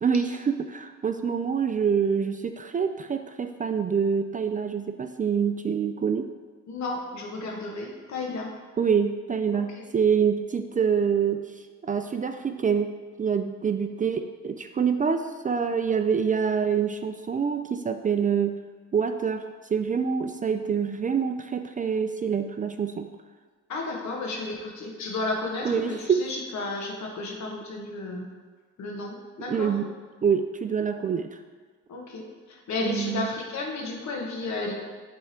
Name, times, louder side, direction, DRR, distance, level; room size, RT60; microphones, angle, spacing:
voice 1, 0.0-6.3 8.8-11.5 11.8-12.9 13.2-18.6 18.9-23.1 25.6-26.2 29.5-29.8 30.2-31.4 32.9-33.3, right 6 dB, 25° right, 7 dB, 0.3 m, -26 dB
voice 2, 6.7-8.5 9.5-9.9 23.7-28.3 28.8-29.7 31.9-34.7, left 3 dB, 65° left, 0 dB, 1.3 m, -33 dB
8.2 x 3.5 x 4.3 m, 1.5 s
cardioid pair, 90°, 30 cm